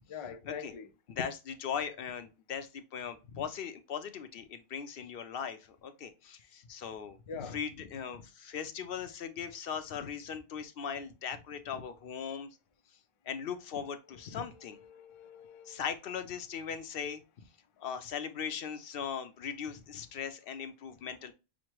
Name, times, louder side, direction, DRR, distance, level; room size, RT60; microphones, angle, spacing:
voice 1, 0.1-0.9 7.3-7.6 14.8-15.8, left 6 dB, 45° left, 0.4 m, -44 dB
voice 2, 1.1-12.5 13.3-14.8 15.7-17.2 17.8-21.3, left 7 dB, 65° left, 0.7 m, -39 dB
6.2 x 2.1 x 2.9 m
omnidirectional pair, 1.1 m